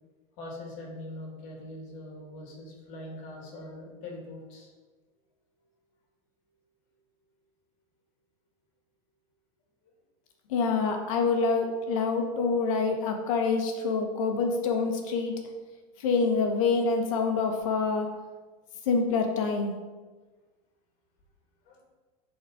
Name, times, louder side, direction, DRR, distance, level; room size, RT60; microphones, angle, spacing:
voice 1, 0.4-4.7 21.7-21.8, left 1 dB, 45° left, -1 dB, 2.2 m, -42 dB
voice 2, 10.5-15.4 16.0-18.1 18.9-19.8, left 4 dB, 65° left, 3 dB, 1.3 m, -26 dB
10.5 x 4.3 x 3.8 m, 1.3 s
supercardioid pair, 165°, 18 cm